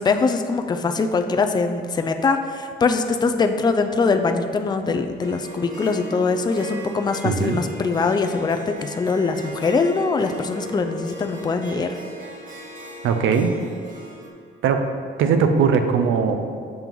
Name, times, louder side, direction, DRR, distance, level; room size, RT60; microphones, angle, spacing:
voice 1, 0.0-11.9, left 4 dB, 20° left, 6 dB, 0.4 m, -22 dB
Harp, 5.2-14.3, equal, 40° right, 1.4 m, -38 dB
voice 2, 7.2-7.6 13.0-13.5 14.6-14.8 15.2-16.7, right 6 dB, 80° right, 6 dB, 0.6 m, -20 dB
7.7 x 3.0 x 5.2 m, 2.2 s
cardioid pair, 90°, 20 cm